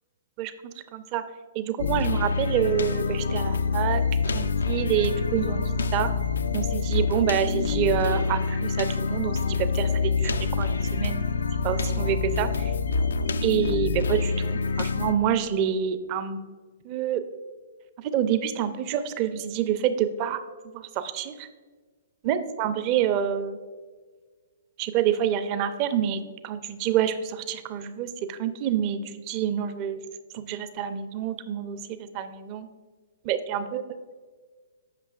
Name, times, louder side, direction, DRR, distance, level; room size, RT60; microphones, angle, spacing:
voice 1, 0.9-1.2 1.5-4.0 4.3-5.6 5.9-6.1 6.5-11.2 11.6-12.7 13.4-16.4 16.8-17.2 18.0-20.4 20.7-21.5 22.2-23.6 24.8-30.0 30.3-32.7 33.2-33.8, right 9 dB, 40° right, 11 dB, 0.5 m, -27 dB
sound 1, 1.8-15.1, left 4 dB, 80° left, 0.3 m, -26 dB
8.2 x 5.7 x 2.4 m, 1.4 s
hypercardioid pair, 120°, 0 cm